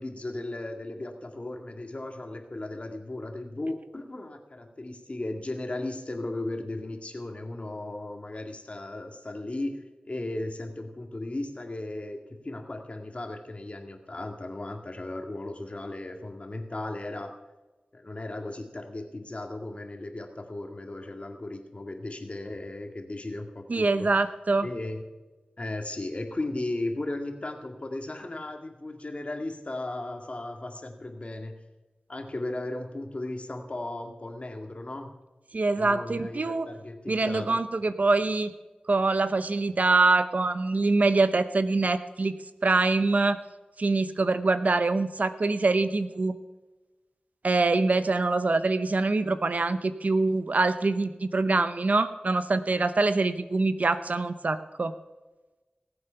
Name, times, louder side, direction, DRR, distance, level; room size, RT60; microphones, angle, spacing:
voice 1, 0.0-9.8 10.0-12.2 12.4-17.3 17.9-24.1 24.6-25.0 25.6-31.5 32.1-35.1 35.7-37.6, left 2 dB, 50° left, 4 dB, 2.0 m, -36 dB
voice 2, 23.7-24.7 35.5-36.7 37.1-38.5 38.9-42.3 42.6-43.4 43.8-46.3 47.4-54.9, right 3 dB, 65° right, 12 dB, 0.8 m, -24 dB
18.0 x 8.0 x 5.7 m, 1.2 s
wide cardioid pair, 50°, 3 cm